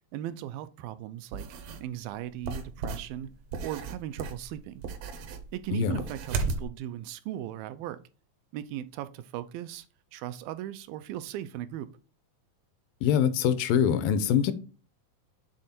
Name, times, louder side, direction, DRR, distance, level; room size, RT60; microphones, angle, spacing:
voice 1, 0.1-1.5 1.8-3.3 3.6-4.8 5.5-8.0 8.5-9.9 10.1-11.9, right 12 dB, 90° right, 2.4 m, -37 dB
sound 1, 1.3-1.8 2.4-6.7, right 4 dB, 75° right, 1.6 m, -35 dB
voice 2, 13.0-14.5, left 8 dB, 85° left, 2.4 m, -24 dB
7.8 x 3.6 x 4.3 m
omnidirectional pair, 4.0 m